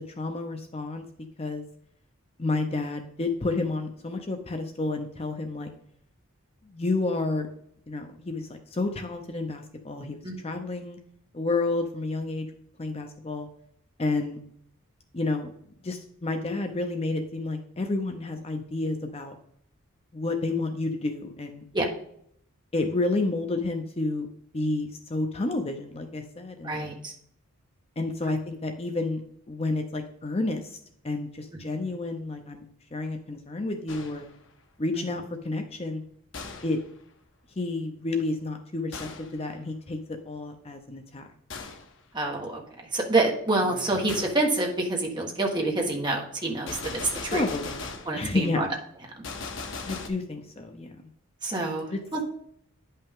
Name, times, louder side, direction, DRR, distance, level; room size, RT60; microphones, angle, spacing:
voice 1, 0.2-1.0 1.4-1.7 2.4-5.7 6.6-7.5 7.9-11.0 11.3-12.5 12.8-13.5 14.0-14.4 15.1-15.5 15.8-19.4 20.1-21.6 22.7-24.3 24.5-26.9 28.0-29.2 29.5-30.8 31.0-32.6 32.9-34.3 34.8-36.0 36.6-36.8 37.6-40.0 40.3-41.3 47.0-47.9 48.1-48.7 49.9-51.0 51.9-52.2, left 2 dB, 30° left, 5 dB, 0.6 m, -30 dB
voice 2, 10.2-10.6 21.7-21.9 26.6-27.1 34.9-35.0 42.1-42.6 42.9-47.4 48.1-48.7 49.1-49.2 51.4-52.2, right 2 dB, 20° right, 0 dB, 1.3 m, -27 dB
Gunshot gunfire, 33.9-34.4 36.3-36.9 38.9-39.4 41.5-41.9 44.1-44.4 46.7-48.2 49.2-50.1, left 4 dB, 60° left, 0.9 m, -38 dB
10.0 x 5.6 x 3.6 m, 0.67 s
head